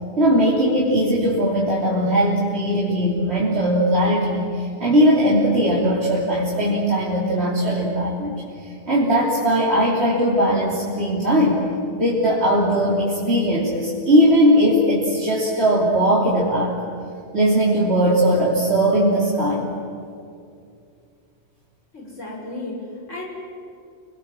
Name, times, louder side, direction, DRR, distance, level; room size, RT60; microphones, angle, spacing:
voice 1, 0.2-8.3 8.6-11.6 11.9-16.8 17.3-19.7, equal, 60° right, -5 dB, 3.5 m, -19 dB
voice 2, 21.9-23.2, left 2 dB, 90° left, -2 dB, 6.2 m, -34 dB
29.5 x 21.0 x 7.6 m, 2.4 s
omnidirectional pair, 1.2 m